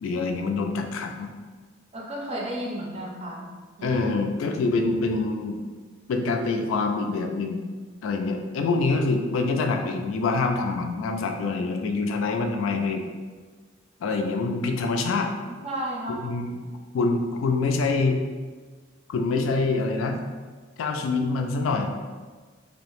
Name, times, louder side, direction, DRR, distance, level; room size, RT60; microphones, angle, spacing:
voice 1, 0.0-1.3 3.8-5.6 6.1-7.6 8.0-13.0 14.0-15.3 16.1-16.6 16.9-18.2 19.1-20.2 20.8-21.9, left 3 dB, 85° left, 4 dB, 0.3 m, -25 dB
voice 2, 1.9-3.5 3.8-4.0 15.5-16.2, right 1 dB, 30° right, -3 dB, 0.5 m, -33 dB
2.7 x 2.0 x 2.9 m, 1.4 s
head